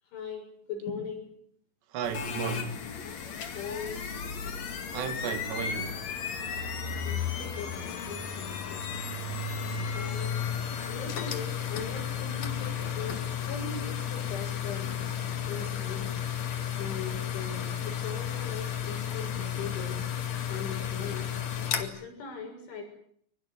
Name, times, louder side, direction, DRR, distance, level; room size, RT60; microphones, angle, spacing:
voice 1, 0.1-1.3 3.5-4.0 7.0-8.9 9.9-10.4 10.9-13.2 13.5-16.1 16.8-20.0 20.5-21.3 21.7-22.8, left 5 dB, 85° left, 9.3 m, -40 dB
voice 2, 1.9-2.9 4.9-6.0 9.8-10.0, right 7 dB, 70° right, 3.9 m, -35 dB
sound 1, 2.0-21.8, left 8 dB, 45° left, 2.7 m, -33 dB
23.0 x 21.5 x 9.8 m
omnidirectional pair, 5.3 m